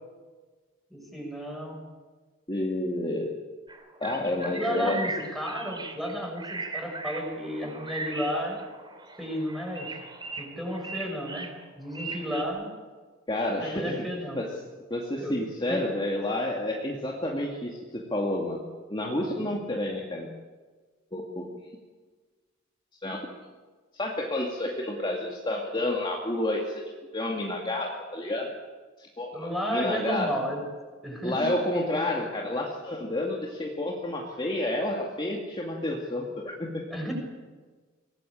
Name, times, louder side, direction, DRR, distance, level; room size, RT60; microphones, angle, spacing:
voice 1, 0.9-1.8 4.5-8.6 9.2-9.9 10.4-11.5 11.8-12.7 13.6-14.4 15.2-15.4 15.7-15.9 29.3-30.6 31.0-31.5 36.9-37.1, equal, ahead, 0 dB, 6.8 m, -32 dB
voice 2, 2.5-3.3 4.0-5.0 13.3-14.1 14.4-14.6 14.9-18.6 18.9-20.3 21.1-21.5 23.0-23.3 23.9-26.8 27.1-28.5 29.0-30.3 31.2-36.8, left 1 dB, 25° left, -1 dB, 2.3 m, -30 dB
sound 1, 3.7-12.4, right 3 dB, 25° right, 3.3 m, -38 dB
24.0 x 19.0 x 8.7 m, 1.4 s
head